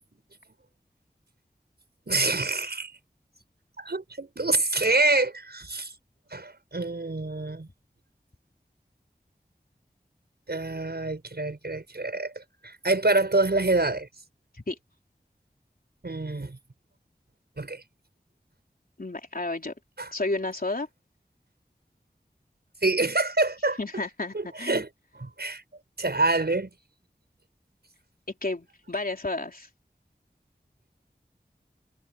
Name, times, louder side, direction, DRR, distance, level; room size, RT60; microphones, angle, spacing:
voice 1, 2.1-2.9 3.8-5.9 6.3-7.7 10.5-14.1 16.0-16.6 17.6-17.8 20.0-20.1 22.8-24.0 24.3-24.9 25.1-25.6 26.0-26.7, right 2 dB, 75° right, 6.8 m, -26 dB
voice 2, 19.0-19.7 20.1-20.9 23.8-24.8 28.4-29.7, left 2 dB, 60° left, 3.6 m, -31 dB
wide cardioid pair, 45°, 17 cm